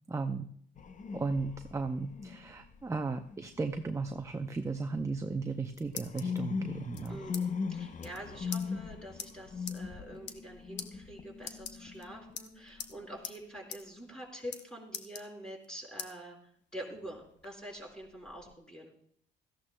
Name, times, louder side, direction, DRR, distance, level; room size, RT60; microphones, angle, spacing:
voice 1, 0.1-0.5 1.1-7.2, right 3 dB, 15° right, 6 dB, 0.6 m, -35 dB
sound 1, 0.8-4.9 5.3-13.2 18.0-18.5, left 5 dB, 40° left, 0.7 m, -40 dB
sound 2, 5.4-6.4 6.9-7.4 7.7-7.8 8.0-8.2 8.5-8.6 9.2-9.3 9.7-9.8 10.2-10.5 10.8-10.9 11.4-12.0 12.4-12.9 13.2-13.4 13.7-13.8 14.1-14.6 14.9-15.6 16.0-16.1 16.6-17.5, left 8 dB, 65° left, 0.9 m, -42 dB
voice 2, 7.1-16.4 16.7-18.9, right 1 dB, 5° left, -2 dB, 4.7 m, -46 dB
17.0 x 14.0 x 2.2 m, 0.63 s
cardioid pair, 90°, 20 cm